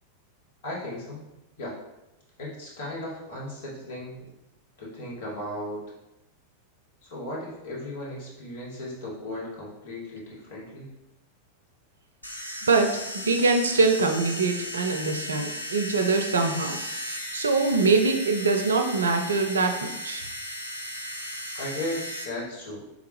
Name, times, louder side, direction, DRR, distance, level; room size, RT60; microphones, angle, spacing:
voice 1, 0.6-1.2 1.6-1.7 2.4-4.2 4.8-5.8 7.0-10.9 21.5-22.8, left 1 dB, 55° left, -5 dB, 1.4 m, -36 dB
sound 1, 12.2-22.2, equal, 85° left, 0.6 m, -36 dB
voice 2, 12.6-16.8 17.3-20.2, right 3 dB, 70° right, 6 dB, 0.4 m, -23 dB
3.7 x 3.4 x 3.3 m, 0.92 s
figure-of-eight pair, 90°, 0 cm